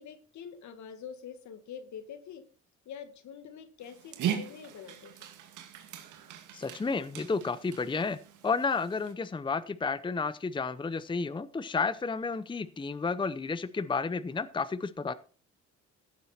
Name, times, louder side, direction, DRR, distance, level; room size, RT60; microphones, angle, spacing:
voice 1, 0.0-2.4 2.9-5.3, left 7 dB, 70° left, 1.8 m, -45 dB
Dog, 3.8-9.1, right 9 dB, 80° right, 2.1 m, -39 dB
voice 2, 6.5-8.2 8.4-15.1, left 4 dB, 15° left, 0.7 m, -31 dB
15.5 x 7.4 x 4.3 m
cardioid pair, 90°, 30 cm